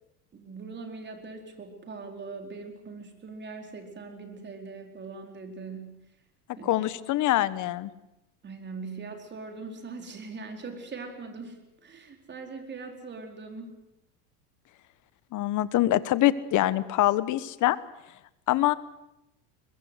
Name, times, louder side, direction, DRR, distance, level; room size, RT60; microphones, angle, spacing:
voice 1, 0.3-5.9 6.6-6.9 8.4-13.7, right 4 dB, 25° right, 4 dB, 4.6 m, -41 dB
voice 2, 6.6-7.9 15.3-17.8 18.5-18.7, left 15 dB, 40° left, 16 dB, 1.3 m, -24 dB
22.5 x 21.5 x 8.1 m, 0.89 s
supercardioid pair, 130°, 44 cm